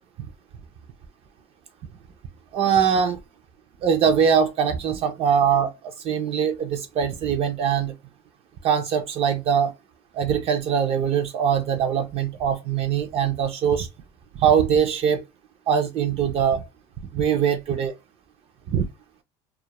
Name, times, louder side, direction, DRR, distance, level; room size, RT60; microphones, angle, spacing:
voice 1, 2.5-3.2 3.8-7.9 8.6-9.7 10.1-13.9 14.4-15.2 15.7-16.6 17.1-17.9 18.7-18.8, right 7 dB, 50° right, 0.4 m, -22 dB
2.3 x 2.0 x 2.9 m
cardioid pair, 120°, 13 cm